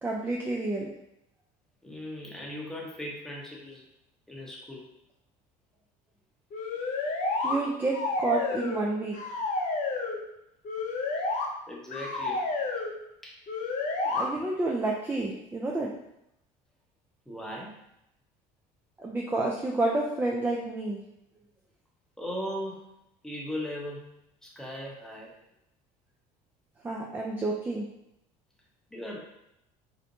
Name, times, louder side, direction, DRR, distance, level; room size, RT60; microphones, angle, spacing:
voice 1, 0.0-0.9 7.4-9.2 14.1-15.9 19.0-21.0 26.8-27.9, right 2 dB, 10° right, -2 dB, 0.3 m, -29 dB
voice 2, 1.8-3.8 4.3-4.9 11.7-12.5 13.2-13.4 17.3-17.8 22.2-22.9 23.2-25.3 28.9-29.2, left 1 dB, 5° left, -3 dB, 0.7 m, -38 dB
sound 1, 6.5-7.6 7.9-8.9 9.1-10.2 10.6-11.5 11.9-12.9 13.5-14.2, left 3 dB, 50° left, 0.6 m, -30 dB
2.6 x 2.1 x 2.8 m, 0.82 s
supercardioid pair, 90°, 16 cm